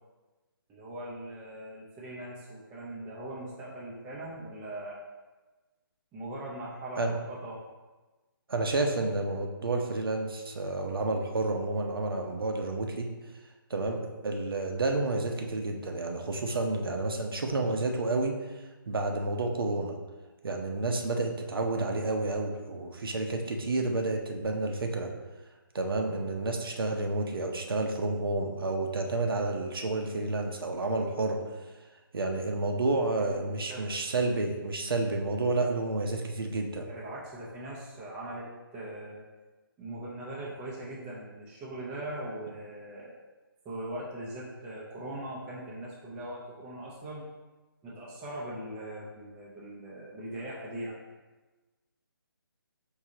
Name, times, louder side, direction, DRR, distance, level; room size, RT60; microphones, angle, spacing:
voice 1, 0.7-5.0 6.1-7.6 33.1-33.9 36.8-39.2 39.8-43.1 43.6-47.2 47.8-51.0, right 1 dB, 10° right, -6 dB, 0.5 m, -40 dB
voice 2, 8.5-13.1 13.7-18.4 18.9-20.0 20.4-25.1 25.7-31.4 32.1-36.9, right 2 dB, 75° right, 2 dB, 0.7 m, -30 dB
4.8 x 2.7 x 3.8 m, 1.2 s
hypercardioid pair, 155°, 12 cm